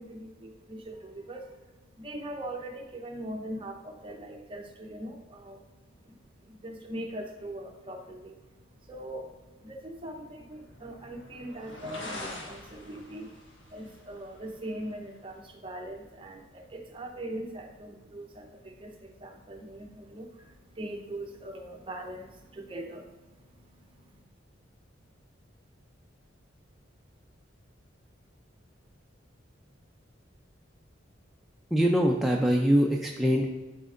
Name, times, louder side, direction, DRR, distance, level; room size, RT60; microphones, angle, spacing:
voice 1, 0.0-24.2, right 1 dB, 30° right, 2 dB, 0.8 m, -41 dB
sound 1, 7.9-22.5, left 1 dB, 75° left, 1.4 m, -50 dB
voice 2, 31.7-33.5, equal, ahead, -1 dB, 0.4 m, -23 dB
12.0 x 4.3 x 2.5 m, 1.2 s
head